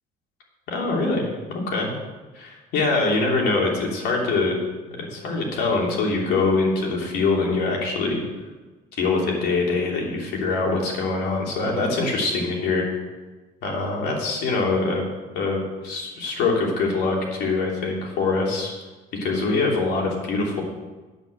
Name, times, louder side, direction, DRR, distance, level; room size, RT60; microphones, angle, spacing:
voice 1, 0.7-1.9 2.3-4.6 4.9-8.2 8.9-12.9 13.6-15.1 15.3-18.7 19.2-20.6, left 3 dB, 80° left, -1 dB, 3.3 m, -24 dB
9.1 x 8.4 x 7.6 m, 1.2 s
cardioid pair, 110°, 17 cm